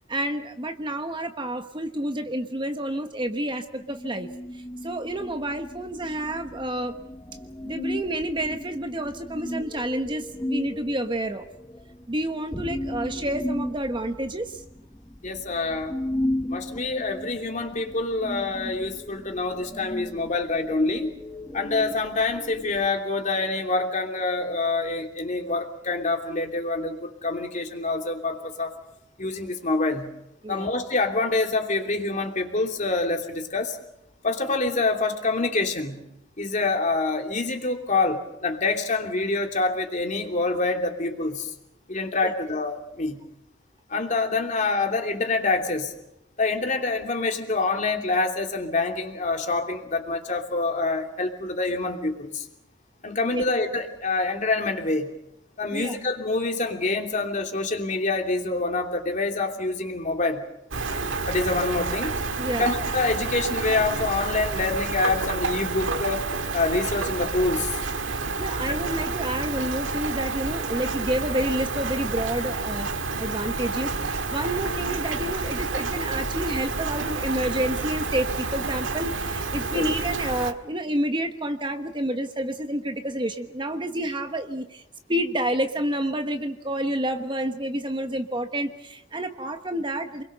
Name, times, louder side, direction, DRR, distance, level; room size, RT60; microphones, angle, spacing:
voice 1, 0.1-4.3 4.8-7.0 7.6-11.5 12.1-14.6 30.4-30.7 42.2-42.3 53.3-53.4 55.7-56.0 62.4-62.7 68.4-84.8 85.1-90.2, right 1 dB, 25° right, 6 dB, 1.2 m, -29 dB
sound 1, 3.7-22.9, left 1 dB, 15° left, 1.0 m, -35 dB
voice 2, 15.2-15.9 16.5-21.1 21.5-28.8 29.2-30.1 30.5-33.8 34.2-36.0 36.4-41.5 41.9-43.2 43.9-45.9 46.4-52.4 53.0-55.1 55.6-60.4 61.3-62.1 62.5-66.2 66.5-67.7 79.7-79.9, left 3 dB, 40° left, 3 dB, 3.0 m, -26 dB
Rain, 60.7-80.5, right 3 dB, 80° right, 1.7 m, -29 dB
29.0 x 21.5 x 6.8 m, 0.85 s
head